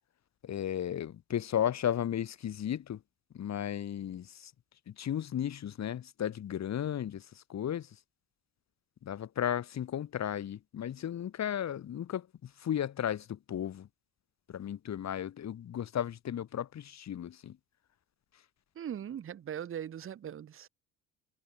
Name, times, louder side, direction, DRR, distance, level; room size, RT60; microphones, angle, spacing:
voice 1, 0.4-3.0 3.3-4.5 4.9-7.9 9.0-13.9 14.5-17.6, left 10 dB, 45° left, 2.3 m, -35 dB
voice 2, 18.7-20.7, right 9 dB, 35° right, 1.1 m, -40 dB
figure-of-eight pair, 55°, 39 cm